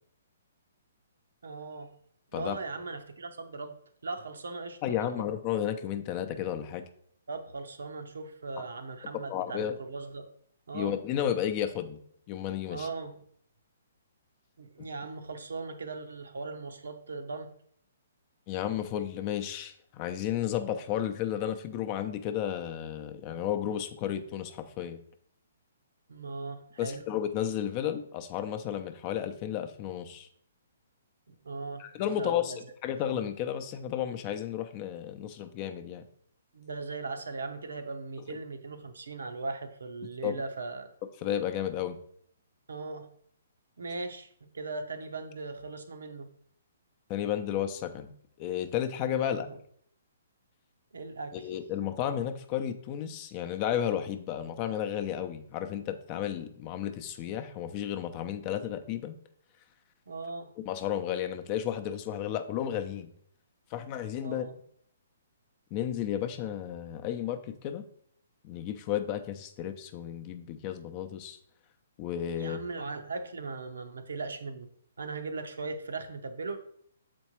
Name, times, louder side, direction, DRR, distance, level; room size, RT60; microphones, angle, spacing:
voice 1, 1.4-1.9 2.3-3.8 4.0-5.2 7.3-10.3 10.7-10.9 12.7-13.2 14.6-17.5 26.1-27.0 31.3-32.6 36.5-40.9 42.7-43.1 43.8-46.3 49.2-49.6 50.9-51.5 60.1-60.5 64.2-64.5 72.3-74.7 75.0-76.6, right 3 dB, 90° right, 6 dB, 0.8 m, -39 dB
voice 2, 4.8-6.8 8.6-8.7 9.3-9.8 10.7-12.0 12.3-12.9 18.5-25.0 26.8-30.3 31.8-32.5 32.8-36.0 38.3-38.4 40.2-40.4 41.2-42.0 47.1-48.1 48.4-49.5 51.3-59.2 60.6-63.1 63.7-64.4 65.7-67.8 68.4-71.4 72.0-72.6, left 10 dB, 30° left, 8 dB, 0.5 m, -33 dB
7.2 x 4.3 x 3.0 m, 0.64 s
hypercardioid pair, 150°, 0 cm